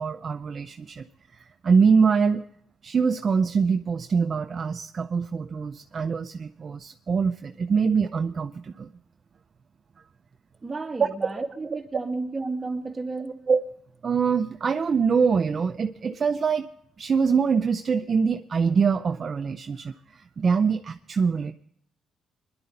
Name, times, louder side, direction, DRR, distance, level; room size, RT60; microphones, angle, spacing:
voice 1, 0.0-2.5 2.8-8.9 11.0-11.1 13.5-13.6 14.0-16.7 17.0-21.5, right 5 dB, 45° right, 8 dB, 0.5 m, -24 dB
voice 2, 10.6-13.4, right 3 dB, 20° right, 2 dB, 2.2 m, -32 dB
21.0 x 11.5 x 3.9 m, 0.68 s
cardioid pair, 90°, 0 cm